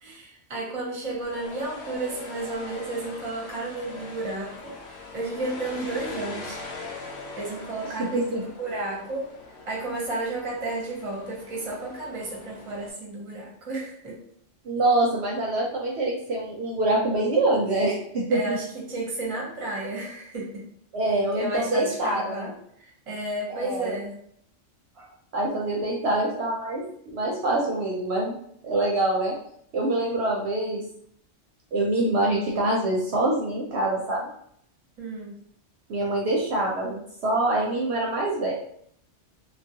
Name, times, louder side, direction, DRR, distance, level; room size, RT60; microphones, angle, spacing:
voice 1, 0.0-6.6 7.2-9.3 9.7-14.2 18.3-20.6 21.0-22.5 22.8-24.2 24.9-25.1 35.0-35.3, right 2 dB, 35° right, -3 dB, 0.7 m, -32 dB
sound 1, 1.0-12.9, left 2 dB, 90° left, 1.0 m, -41 dB
voice 2, 8.0-8.4 14.6-18.6 20.9-22.5 23.5-24.0 25.3-28.3 28.6-29.3 29.7-30.8 31.7-34.3 35.9-38.5, right 2 dB, 65° right, -2 dB, 0.8 m, -25 dB
2.3 x 2.2 x 2.7 m, 0.67 s
omnidirectional pair, 1.3 m